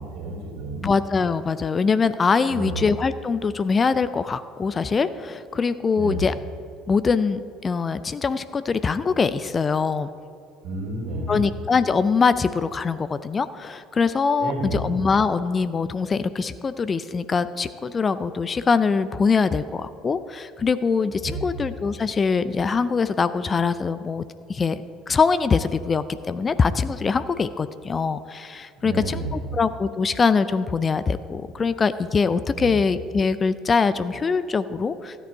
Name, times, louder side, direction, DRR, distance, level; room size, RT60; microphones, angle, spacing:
voice 1, 0.0-0.9 2.5-2.8 5.9-6.3 10.6-11.5 14.4-14.8 21.2-21.5 28.8-29.5 32.6-32.7, right 2 dB, 60° right, -1 dB, 2.9 m, -31 dB
voice 2, 0.8-6.3 6.9-10.1 11.3-24.2 24.5-35.2, left 5 dB, 30° left, 14 dB, 0.4 m, -23 dB
13.5 x 9.1 x 4.6 m, 2.4 s
figure-of-eight pair, 60°, 0 cm